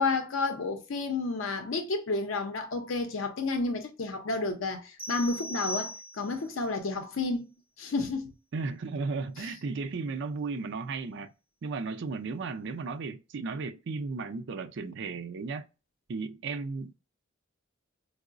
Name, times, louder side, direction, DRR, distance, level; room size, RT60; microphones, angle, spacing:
voice 1, 0.0-7.5 7.8-8.3 9.4-9.5, left 3 dB, 80° left, 0.6 m, -31 dB
sound 1, 5.0-6.5, equal, 10° right, 0.8 m, -38 dB
voice 2, 8.5-11.3 11.6-15.7 16.1-17.0, right 4 dB, 65° right, 0.4 m, -35 dB
4.5 x 2.0 x 2.4 m
head